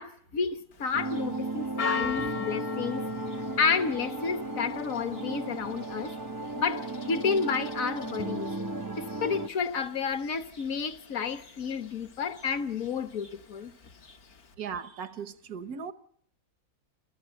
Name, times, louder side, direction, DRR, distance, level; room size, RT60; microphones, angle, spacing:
voice 1, 0.0-3.1 3.6-6.1 6.6-8.5 9.0-13.7, left 5 dB, 65° left, 1.6 m, -31 dB
Church bell, 0.7-14.5, left 7 dB, 80° left, 1.9 m, -41 dB
sound 1, 0.9-9.5, right 3 dB, 20° right, 0.6 m, -35 dB
voice 2, 14.6-15.9, right 6 dB, 85° right, 1.6 m, -37 dB
28.5 x 14.0 x 7.9 m
omnidirectional pair, 1.6 m